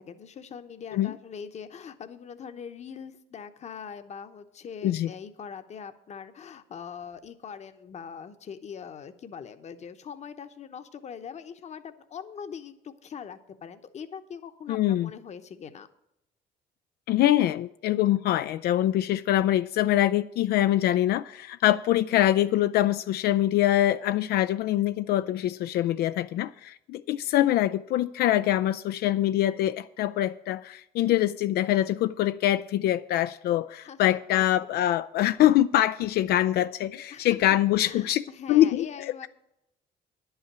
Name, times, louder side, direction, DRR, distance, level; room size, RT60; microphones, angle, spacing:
voice 1, 0.0-15.9 33.8-34.7 37.1-37.4 37.8-39.3, left 7 dB, 40° left, 0.9 m, -42 dB
voice 2, 14.7-15.1 17.1-38.2 38.5-39.3, left 13 dB, 70° left, 0.4 m, -24 dB
10.5 x 5.7 x 8.7 m
cardioid pair, 110°, 17 cm